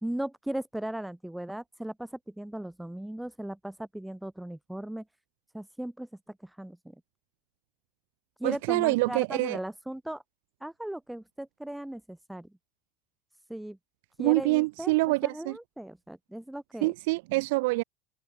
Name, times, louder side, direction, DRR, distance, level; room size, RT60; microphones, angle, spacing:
voice 1, 0.0-5.0 5.5-6.1 6.4-6.8 8.4-10.2 10.6-12.5 13.5-13.8 14.2-16.9, right 1 dB, 5° right, 4.3 m, -37 dB
voice 2, 8.4-9.6 14.2-15.6 16.8-17.8, right 24 dB, 70° right, 1.0 m, -26 dB
open air
hypercardioid pair, 75°, 0 cm